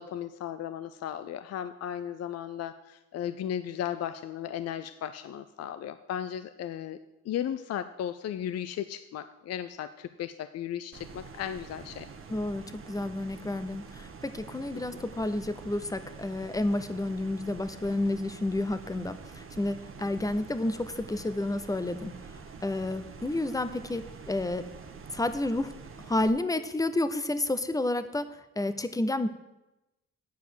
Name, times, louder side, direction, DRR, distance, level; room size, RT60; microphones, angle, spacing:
voice 1, 0.0-7.0 7.2-12.1, left 10 dB, 55° left, 12 dB, 0.5 m, -35 dB
sound 1, 10.9-26.3, right 5 dB, 45° right, 1.2 m, -46 dB
voice 2, 12.3-22.1 22.6-24.7 25.1-25.7 26.1-29.3, left 2 dB, 10° left, 11 dB, 0.7 m, -30 dB
9.3 x 4.9 x 7.9 m, 0.97 s
cardioid pair, 90°, 30 cm